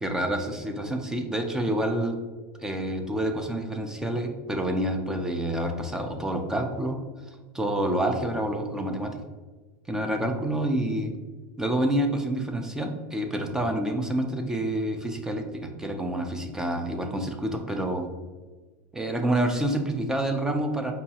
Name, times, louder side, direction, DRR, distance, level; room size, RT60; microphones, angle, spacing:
voice 1, 0.0-2.2 2.6-7.0 7.3-9.2 9.9-11.1 11.6-18.1 18.9-20.9, right 1 dB, 5° right, 4 dB, 0.3 m, -28 dB
5.0 x 2.3 x 2.7 m, 1.3 s
supercardioid pair, 160°, 9 cm